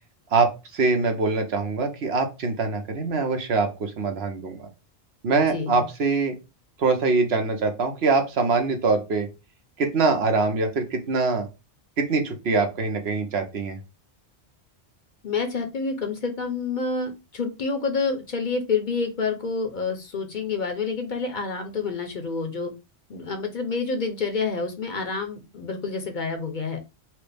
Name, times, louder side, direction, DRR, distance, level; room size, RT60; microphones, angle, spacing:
voice 1, 0.3-4.7 5.2-6.4 6.8-9.3 9.8-11.5 12.0-13.8, right 4 dB, 70° right, 5 dB, 1.0 m, -23 dB
voice 2, 5.5-5.8 15.2-22.7 23.1-26.8, left 4 dB, 50° left, 5 dB, 0.7 m, -28 dB
4.4 x 2.0 x 3.3 m, 0.27 s
omnidirectional pair, 1.1 m